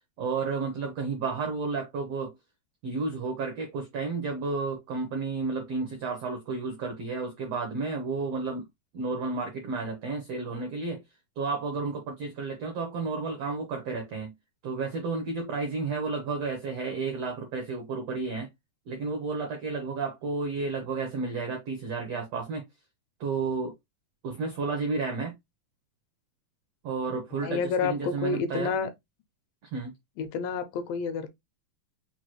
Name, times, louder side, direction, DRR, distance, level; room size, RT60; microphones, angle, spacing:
voice 1, 0.2-2.3 2.8-8.6 8.9-11.0 11.4-14.3 14.6-18.5 18.9-22.6 23.2-23.7 24.2-25.3 26.8-28.7 29.7-29.9, right 4 dB, 80° right, 1.4 m, -32 dB
voice 2, 27.4-28.9 30.2-31.3, left 5 dB, 85° left, 2.3 m, -29 dB
5.9 x 2.3 x 3.0 m
omnidirectional pair, 4.1 m